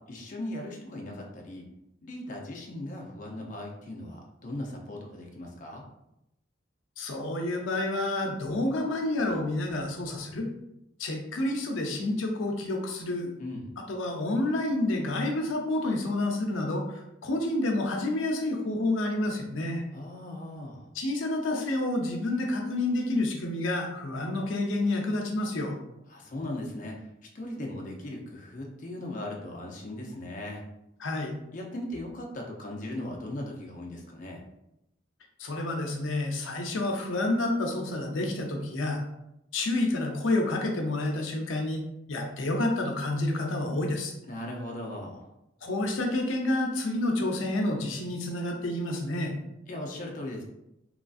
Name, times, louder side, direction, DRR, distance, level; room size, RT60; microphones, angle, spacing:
voice 1, 0.1-1.7 2.0-5.8 13.4-13.7 19.9-20.9 26.1-27.1 27.3-30.6 31.5-34.4 44.3-45.3 49.7-50.4, left 1 dB, 40° left, 0 dB, 0.4 m, -38 dB
voice 2, 7.0-10.5 11.0-13.3 13.8-19.8 20.9-25.8 31.0-31.4 35.4-39.0 39.5-41.8 42.1-44.1 45.6-49.3, left 2 dB, 90° left, 2 dB, 0.5 m, -29 dB
3.0 x 2.5 x 2.3 m, 0.86 s
head